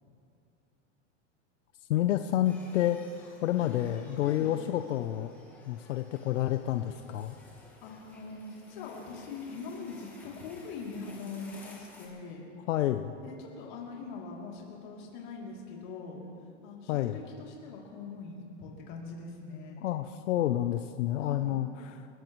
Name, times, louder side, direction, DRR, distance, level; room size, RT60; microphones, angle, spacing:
voice 1, 1.9-3.0 3.4-5.3 5.7-7.3 12.7-13.1 16.9-17.2 19.8-22.1, left 13 dB, 85° left, 8 dB, 0.7 m, -29 dB
sound 1, 2.4-12.1, left 2 dB, 5° left, 1.6 m, -55 dB
voice 2, 4.2-4.5 7.6-12.5 13.2-16.2 16.6-19.8 21.2-21.6, left 4 dB, 40° left, -2 dB, 3.1 m, -42 dB
29.5 x 14.0 x 3.1 m, 2.6 s
supercardioid pair, 180°, 37 cm